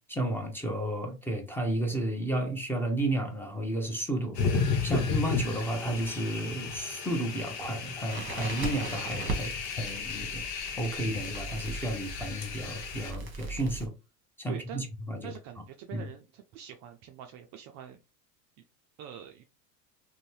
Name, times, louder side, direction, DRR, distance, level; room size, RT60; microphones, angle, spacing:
voice 1, 0.1-4.4 4.8-9.5 9.8-10.4 10.8-13.9 14.4-15.3 15.9-16.1, right 1 dB, 5° left, 0.6 m, -32 dB
sound 1, 4.3-13.1, left 5 dB, 85° left, 0.9 m, -34 dB
Crackle, 8.1-13.9, right 3 dB, 25° right, 1.0 m, -39 dB
voice 2, 14.5-14.9 15.2-18.0 19.0-19.4, right 9 dB, 40° right, 0.4 m, -45 dB
2.6 x 2.2 x 3.1 m
hypercardioid pair, 100°, 48 cm